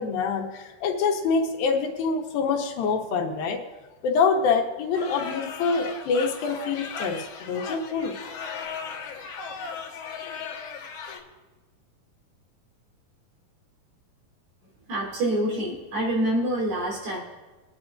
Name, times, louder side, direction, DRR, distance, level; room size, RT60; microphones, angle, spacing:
voice 1, 0.0-3.6 4.0-8.1, left 5 dB, 75° left, 2 dB, 2.7 m, -25 dB
sound 1, 4.9-11.2, left 5 dB, 55° left, 1.9 m, -36 dB
voice 2, 14.9-17.2, right 1 dB, 75° right, -3 dB, 5.5 m, -26 dB
24.0 x 9.7 x 2.6 m, 1.2 s
omnidirectional pair, 4.2 m